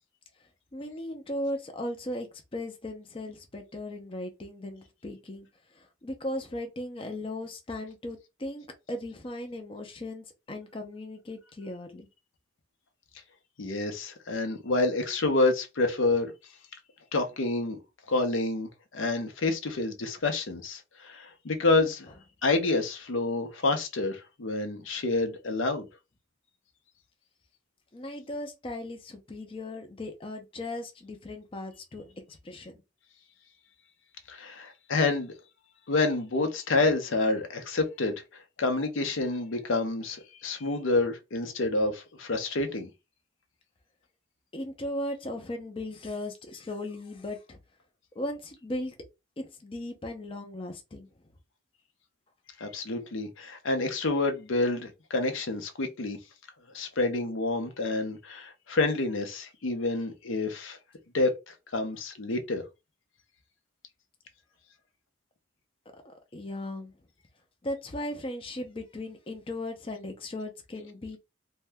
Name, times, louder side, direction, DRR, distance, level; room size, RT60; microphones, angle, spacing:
voice 1, 0.7-2.3 2.5-5.5 5.7-12.1 27.9-32.8 44.5-47.6 48.2-49.0 49.4-51.1 66.0-66.9 67.6-71.2, left 1 dB, 25° left, 0.5 m, -37 dB
voice 2, 13.6-16.3 17.1-17.8 18.1-22.1 22.4-25.9 34.3-35.3 35.9-38.2 38.6-42.9 52.6-56.2 56.7-60.8 61.1-62.6, left 3 dB, 70° left, 0.6 m, -28 dB
2.7 x 2.1 x 3.3 m
head